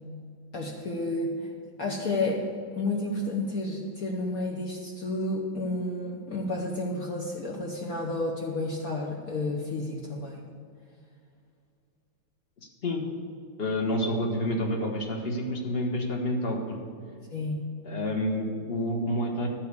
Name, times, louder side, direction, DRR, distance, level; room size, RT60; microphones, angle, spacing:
voice 1, 0.5-1.5 1.8-2.5 2.7-10.4 17.3-17.6, left 2 dB, 55° left, -2 dB, 1.2 m, -31 dB
voice 2, 13.6-16.8 17.8-19.5, left 1 dB, 35° left, 1 dB, 1.2 m, -28 dB
12.0 x 4.7 x 8.2 m, 2.3 s
omnidirectional pair, 2.2 m